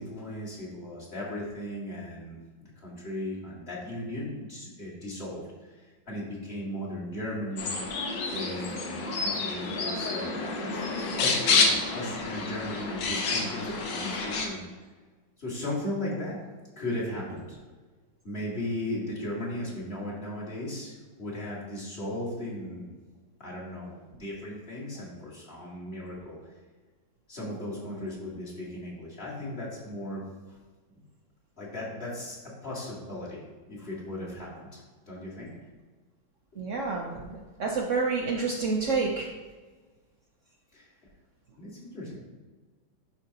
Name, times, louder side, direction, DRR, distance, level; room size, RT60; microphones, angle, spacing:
voice 1, 0.0-5.4 5.8-14.7 15.4-16.4 16.8-17.6 18.2-22.9 23.4-26.5 27.3-30.2 30.5-30.6 31.6-32.4 32.6-33.4 33.7-35.5 40.7-40.9 41.6-42.2, left 1 dB, 30° left, -6 dB, 2.1 m, -37 dB
sound 1, 7.6-14.5, left 4 dB, 70° left, 1.5 m, -29 dB
voice 2, 36.6-39.3, right 4 dB, 90° right, 0 dB, 0.6 m, -29 dB
11.0 x 4.5 x 2.8 m, 1.4 s
omnidirectional pair, 2.2 m